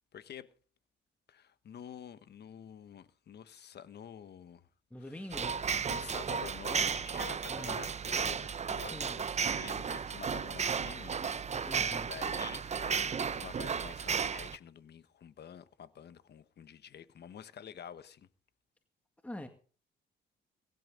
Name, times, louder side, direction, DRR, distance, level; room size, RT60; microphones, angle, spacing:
voice 1, 0.1-0.5 1.3-4.7 5.1-5.3 5.9-18.3, left 8 dB, 55° left, 1.3 m, -49 dB
voice 2, 4.9-5.6 7.5-7.8 8.8-9.2 11.5-12.1 19.2-19.5, left 1 dB, 5° left, 2.1 m, -44 dB
sound 1, 5.3-14.6, right 6 dB, 35° right, 0.8 m, -34 dB
22.0 x 12.0 x 3.9 m
cardioid pair, 90°, 20 cm